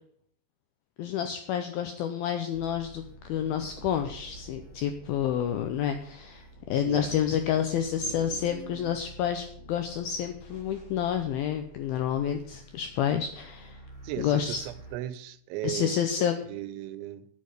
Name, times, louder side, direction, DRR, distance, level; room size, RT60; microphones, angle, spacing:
voice 1, 1.0-13.8 14.2-14.6 15.6-16.4, left 9 dB, 85° left, 2.1 m, -29 dB
sound 1, 2.5-15.0, right 1 dB, 30° left, 1.4 m, -49 dB
voice 2, 8.0-9.0 14.0-15.9 16.5-17.3, right 14 dB, 85° right, 3.1 m, -37 dB
9.7 x 8.6 x 6.6 m
omnidirectional pair, 5.2 m